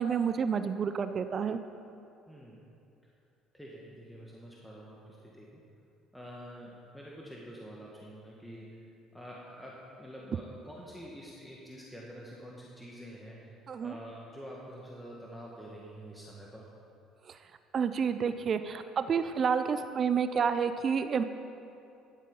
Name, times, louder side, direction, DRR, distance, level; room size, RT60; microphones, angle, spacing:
voice 1, 0.0-1.6 13.7-13.9 17.3-17.4 17.7-21.2, right 6 dB, 45° right, 10 dB, 0.5 m, -29 dB
voice 2, 2.3-2.7 3.0-3.1 3.5-5.6 6.1-8.8 9.1-16.7, equal, 5° left, -4 dB, 1.9 m, -47 dB
12.5 x 8.3 x 5.5 m, 2.6 s
hypercardioid pair, 65°, 0 cm